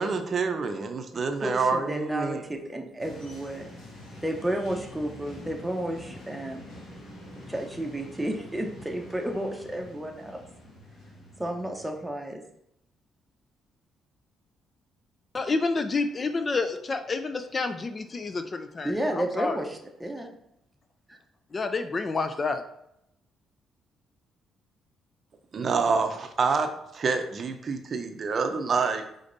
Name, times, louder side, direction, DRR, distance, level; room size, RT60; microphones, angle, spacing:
voice 1, 0.0-2.4 25.5-29.0, right 4 dB, 50° right, 7 dB, 0.5 m, -27 dB
voice 2, 1.1-3.7 4.2-6.6 7.5-10.4 11.4-12.4 18.8-20.3 21.1-21.2, right 1 dB, 5° right, 2 dB, 0.8 m, -32 dB
sound 1, 3.0-12.1, left 1 dB, 70° left, 1.5 m, -46 dB
voice 3, 15.3-19.6 21.5-22.6, left 3 dB, 35° left, 9 dB, 0.4 m, -29 dB
5.1 x 3.9 x 2.6 m, 0.79 s
cardioid pair, 90°, 0 cm